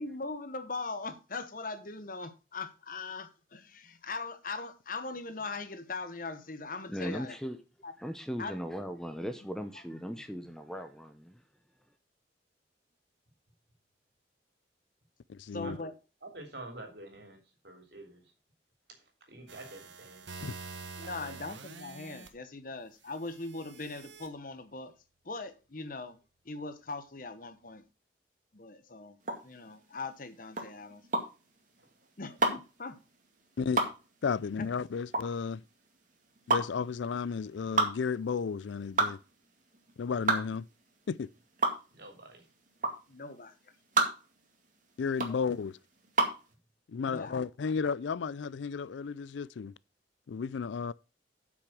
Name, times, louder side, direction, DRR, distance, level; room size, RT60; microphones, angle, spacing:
voice 1, 0.0-7.4 7.8-7.9 8.4-8.6 9.2-9.3 9.9-10.0 15.5-15.9 21.0-24.9 25.2-26.2 26.4-27.8 28.5-29.2 29.4-31.0 32.2-33.0 34.6-34.7 43.1-43.5 45.3-45.4 47.0-47.4, left 3 dB, 50° left, 1.1 m, -40 dB
voice 2, 6.9-7.6 8.0-11.4, equal, 5° left, 0.7 m, -38 dB
voice 3, 15.3-15.8 20.4-20.5 33.6-33.8 34.2-35.6 36.5-39.2 40.0-40.7 41.1-41.3 45.0-45.8 46.9-49.7 50.3-50.9, left 5 dB, 80° left, 0.4 m, -33 dB
voice 4, 16.2-17.4 17.6-18.2 19.3-20.3 21.0-21.4 41.9-42.5, right 2 dB, 60° right, 3.3 m, -47 dB
sound 1, 19.5-22.3 23.2-24.3, right 4 dB, 85° right, 1.5 m, -46 dB
sound 2, 29.2-46.5, right 3 dB, 45° right, 2.1 m, -31 dB
8.3 x 6.2 x 6.0 m
head